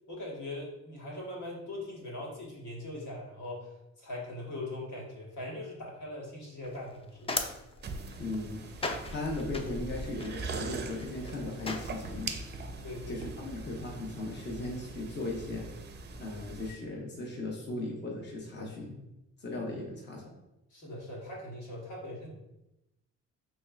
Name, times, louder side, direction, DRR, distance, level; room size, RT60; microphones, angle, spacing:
voice 1, 0.1-3.7 4.0-7.3 12.8-13.2 18.6-18.7 20.7-22.3, left 1 dB, 70° left, -3 dB, 1.4 m, -41 dB
sound 1, 6.6-12.3, left 3 dB, 20° left, 0.4 m, -39 dB
sound 2, 7.8-16.7, right 4 dB, 35° right, 0.5 m, -42 dB
voice 2, 8.2-12.3 13.1-15.7 16.2-19.0 19.4-20.3, left 2 dB, 35° left, -2 dB, 0.8 m, -37 dB
4.4 x 3.2 x 2.3 m, 0.91 s
cardioid pair, 90°, 30 cm